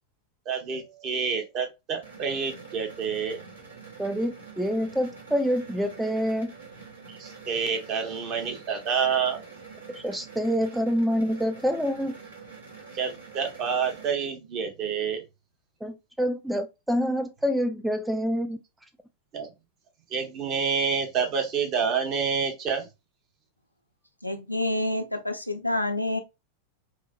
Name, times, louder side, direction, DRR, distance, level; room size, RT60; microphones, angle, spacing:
voice 1, 0.5-3.4 7.1-9.4 12.9-15.2 19.3-19.5 20.1-22.9, right 6 dB, 35° right, 0.8 m, -28 dB
sound 1, 2.0-14.1, right 5 dB, 75° right, 1.0 m, -46 dB
voice 2, 4.0-6.5 9.9-12.1 15.8-18.6, equal, 5° right, 0.3 m, -27 dB
voice 3, 24.2-26.2, left 1 dB, 90° left, 0.4 m, -28 dB
3.2 x 2.0 x 2.4 m
figure-of-eight pair, 90°, 0 cm